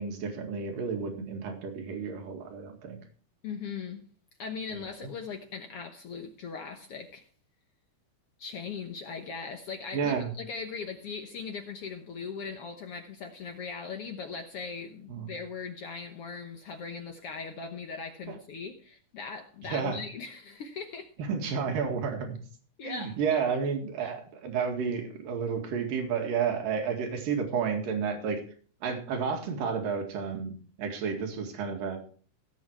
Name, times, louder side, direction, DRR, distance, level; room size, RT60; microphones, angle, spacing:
voice 1, 0.0-3.0 4.7-5.1 9.9-10.3 15.1-15.3 18.3-18.4 19.6-20.0 21.2-22.4 22.8-28.4 28.8-32.0, right 6 dB, 85° right, 3.7 m, -31 dB
voice 2, 3.4-4.1 4.4-7.3 8.4-21.1 22.8-23.2 24.0-24.1, left 5 dB, 65° left, 1.6 m, -39 dB
16.0 x 7.8 x 4.6 m
omnidirectional pair, 3.8 m